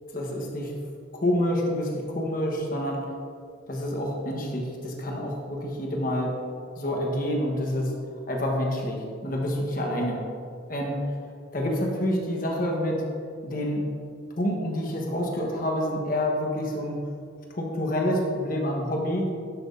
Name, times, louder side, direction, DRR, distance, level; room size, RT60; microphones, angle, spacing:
voice 1, 0.1-0.7 1.1-3.1 3.7-6.3 6.8-7.9 8.3-10.2 10.7-11.1 11.5-13.0 13.4-13.9 14.4-17.0 17.5-19.3, left 1 dB, 45° left, 0 dB, 1.2 m, -27 dB
11.5 x 6.1 x 2.6 m, 2.4 s
head